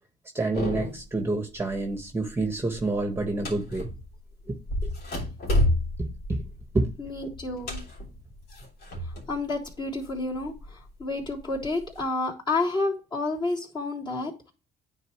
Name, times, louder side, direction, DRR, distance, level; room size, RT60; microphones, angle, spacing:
voice 1, 0.3-3.9 4.5-4.6 4.8-4.9 6.0-6.4 6.7-6.9, right 2 dB, 15° right, 1.4 m, -28 dB
sound 1, 0.5-1.2 1.6-2.0 2.3-4.2 4.7-9.4 9.7-10.7 11.2-12.0, left 1 dB, 65° left, 3.3 m, -30 dB
voice 2, 7.0-7.8 9.3-14.5, left 2 dB, 25° left, 3.5 m, -30 dB
9.6 x 4.3 x 3.1 m
cardioid pair, 110°, 17 cm